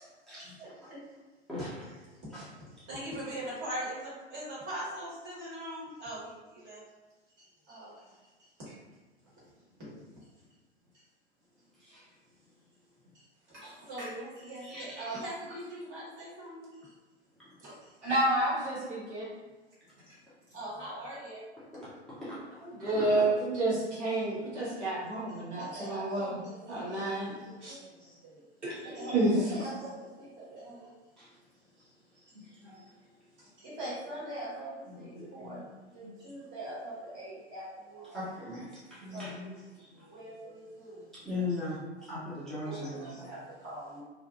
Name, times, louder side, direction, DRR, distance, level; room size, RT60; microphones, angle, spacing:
voice 1, 0.6-1.0 1.9-2.0 2.9-6.8 7.7-7.9 8.7-8.8 9.9-10.0 13.5-16.9 17.6-17.7 20.5-21.4 25.1-28.4 28.8-30.9 32.2-32.3 33.4-35.6 35.9-38.2 38.5-38.6 39.1-39.6 39.9-41.6 42.0-42.1 42.6-44.0, right 1 dB, 30° right, -8 dB, 1.4 m, -42 dB
voice 2, 1.5-1.9 2.3-2.4 11.9-12.0 13.6-13.7 14.6-15.1 22.2-22.4 32.3-32.7 35.0-35.6 36.0-36.1 38.1-38.7 39.0-39.5 41.2-41.8 42.1-43.3, left 2 dB, ahead, -11 dB, 0.5 m, -38 dB
voice 3, 18.0-19.3 22.6-26.4 26.7-27.3 27.6-27.8 28.6-29.5, right 1 dB, 85° right, -8 dB, 1.3 m, -30 dB
2.5 x 2.4 x 2.3 m, 1.3 s
figure-of-eight pair, 105°, 34 cm